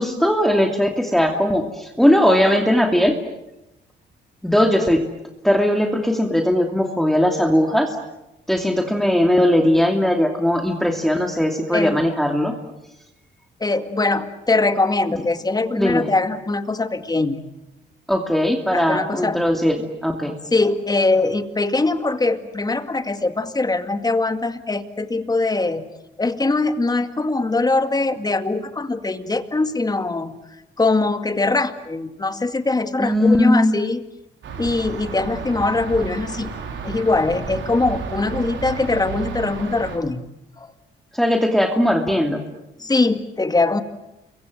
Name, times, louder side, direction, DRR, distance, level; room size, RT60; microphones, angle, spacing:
voice 1, 0.0-3.2 4.4-5.1 5.4-8.0 8.5-12.5 15.1-15.2 15.7-16.1 18.1-20.4 33.0-33.7 41.1-42.4, left 1 dB, ahead, 3 dB, 2.6 m, -19 dB
voice 2, 13.6-17.4 18.7-19.4 20.5-25.9 26.2-30.4 30.8-34.0 34.6-36.5 36.8-40.2 40.6-40.7 42.8-43.8, left 3 dB, 20° left, 9 dB, 2.1 m, -22 dB
sound 1, 34.4-40.0, right 6 dB, 70° right, 4.3 m, -32 dB
28.5 x 23.5 x 7.9 m, 0.91 s
cardioid pair, 90°, 20 cm